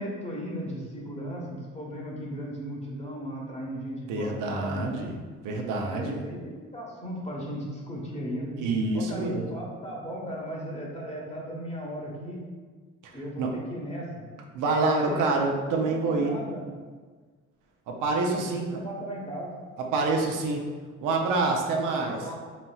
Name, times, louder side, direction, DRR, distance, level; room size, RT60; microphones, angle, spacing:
voice 1, 0.0-5.2 5.8-8.6 8.9-12.4 13.1-14.3 14.8-16.6 18.4-19.5 21.8-22.4, equal, 20° left, -3 dB, 1.1 m, -36 dB
voice 2, 4.1-5.1 5.4-6.2 8.6-9.5 13.0-13.5 14.5-16.3 17.9-18.7 19.8-20.6 21.0-22.2, right 3 dB, 90° right, 0 dB, 0.7 m, -27 dB
4.1 x 4.1 x 2.3 m, 1.5 s
cardioid pair, 90°, 30 cm